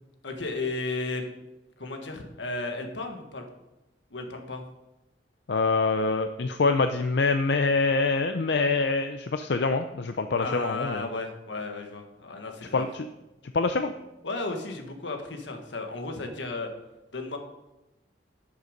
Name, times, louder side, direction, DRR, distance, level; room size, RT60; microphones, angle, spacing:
voice 1, 0.2-1.3 1.8-3.4 4.1-4.6 10.4-12.9 14.2-16.7 17.1-17.4, left 3 dB, 85° left, 4 dB, 1.5 m, -34 dB
voice 2, 5.5-11.0 12.7-13.1 13.5-13.9, left 3 dB, 65° left, 8 dB, 0.5 m, -25 dB
11.5 x 6.8 x 5.1 m, 0.99 s
head